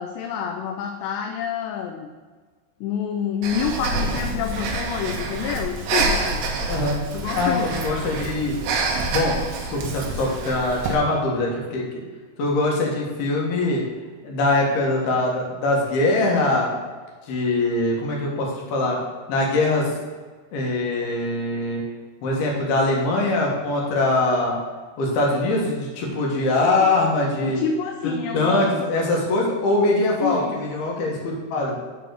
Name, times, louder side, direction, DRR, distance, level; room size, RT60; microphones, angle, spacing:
voice 1, 0.0-2.1 2.8-6.4 7.1-7.7 27.4-28.9 30.2-30.6, left 7 dB, 80° left, 4 dB, 2.7 m, -28 dB
Breathing, 3.4-10.9, right 3 dB, 75° right, 3.0 m, -27 dB
voice 2, 7.3-8.6 9.0-12.0 12.4-13.8 14.2-16.8 17.3-19.0 19.3-19.9 20.5-21.8 22.2-24.6 25.0-27.6 28.0-31.8, left 2 dB, 65° left, -2 dB, 3.5 m, -22 dB
9.2 x 4.1 x 6.4 m, 1.4 s
omnidirectional pair, 5.1 m